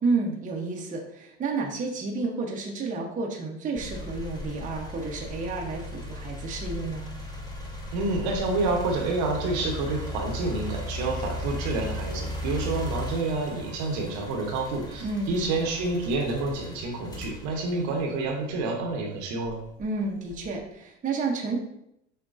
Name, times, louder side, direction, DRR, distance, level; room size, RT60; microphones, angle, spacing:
voice 1, 0.0-7.0 15.0-15.7 19.8-21.6, right 3 dB, 20° right, 0 dB, 0.7 m, -31 dB
sound 1, 3.7-18.8 19.4-20.6, left 1 dB, 10° left, 1.0 m, -37 dB
voice 2, 7.9-19.6, right 3 dB, 50° right, 2 dB, 0.9 m, -28 dB
6.4 x 2.2 x 2.5 m, 0.79 s
hypercardioid pair, 75°, 38 cm